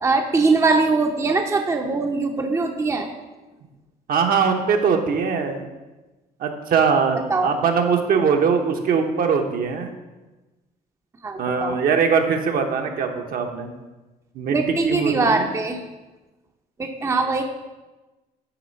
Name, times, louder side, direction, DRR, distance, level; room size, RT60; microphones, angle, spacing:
voice 1, 0.0-3.1 7.3-7.5 11.2-11.8 14.5-15.8 16.8-17.4, right 3 dB, 15° right, 4 dB, 0.6 m, -21 dB
voice 2, 4.1-5.6 6.4-9.9 11.4-13.7 14.3-15.5, right 6 dB, 60° right, 4 dB, 1.0 m, -21 dB
9.1 x 3.6 x 5.3 m, 1.1 s
cardioid pair, 110°, 17 cm